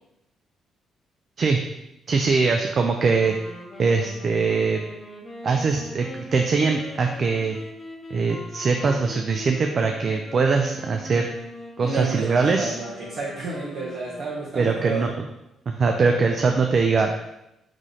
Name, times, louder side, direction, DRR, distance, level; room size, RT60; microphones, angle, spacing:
voice 1, 2.1-3.4 3.8-4.8 5.4-7.6 8.1-11.3 11.8-12.7 14.6-15.1 15.7-17.1, right 4 dB, 45° right, 3 dB, 0.4 m, -22 dB
sound 1, 2.9-14.8, left 1 dB, 35° left, 0.9 m, -41 dB
voice 2, 11.8-15.1, right 3 dB, 65° right, -7 dB, 1.1 m, -31 dB
4.1 x 3.1 x 3.8 m, 0.89 s
cardioid pair, 90°, 0 cm